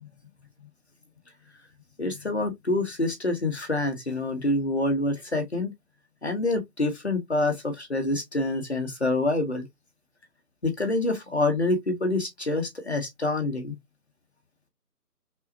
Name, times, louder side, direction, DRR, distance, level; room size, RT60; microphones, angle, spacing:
voice 1, 2.0-5.7 6.2-9.7 10.6-13.7, left 2 dB, 45° left, 0.9 m, -26 dB
5.4 x 2.0 x 2.6 m
figure-of-eight pair, 165°, 48 cm